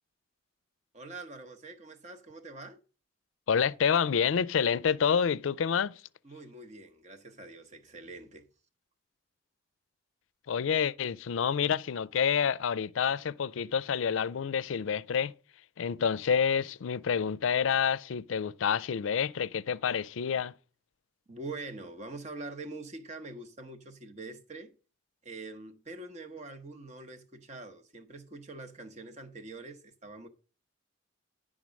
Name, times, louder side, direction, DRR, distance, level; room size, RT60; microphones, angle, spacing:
voice 1, 0.9-2.8 6.2-8.5 21.3-24.7 25.2-30.3, right 2 dB, 35° right, 0.9 m, -44 dB
voice 2, 3.5-6.0 10.5-15.3 15.8-20.5, left 7 dB, 80° left, 0.4 m, -28 dB
10.5 x 3.7 x 6.2 m
head